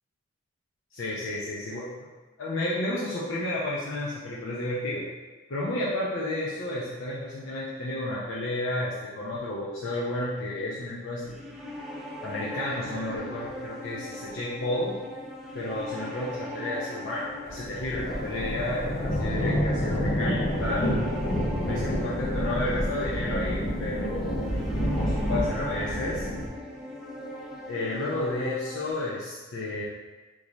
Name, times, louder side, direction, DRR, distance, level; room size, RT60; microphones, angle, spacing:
voice 1, 0.9-1.9 2.4-5.1 5.5-11.4 12.2-15.0 15.5-20.9 21.6-26.3 27.7-29.8, left 1 dB, 75° left, -6 dB, 0.7 m, -32 dB
sound 1, 11.2-28.9, equal, ahead, 0.4 m, -40 dB
sound 2, 17.5-26.5, equal, 50° left, 0.8 m, -28 dB
3.7 x 3.2 x 4.0 m, 1.2 s
head